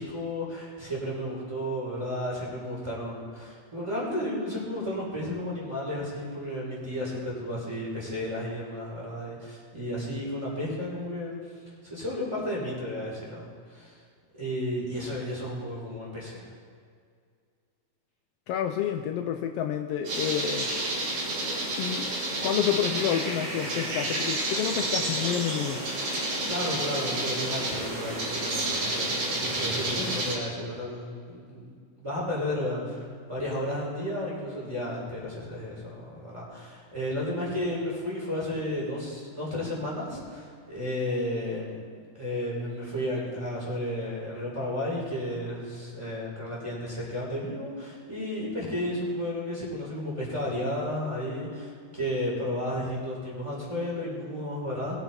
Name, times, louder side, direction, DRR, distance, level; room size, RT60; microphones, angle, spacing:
voice 1, 0.0-11.4 11.8-14.0 14.3-16.5 26.1-31.7 32.0-41.8 42.1-55.0, left 1 dB, 10° right, -5 dB, 4.0 m, -33 dB
voice 2, 18.5-20.7 21.8-22.1 22.4-25.8, left 9 dB, 85° left, 6 dB, 1.3 m, -29 dB
sound 1, 20.0-30.3, right 1 dB, 65° right, 4.6 m, -30 dB
20.5 x 9.3 x 4.3 m, 2.1 s
omnidirectional pair, 3.5 m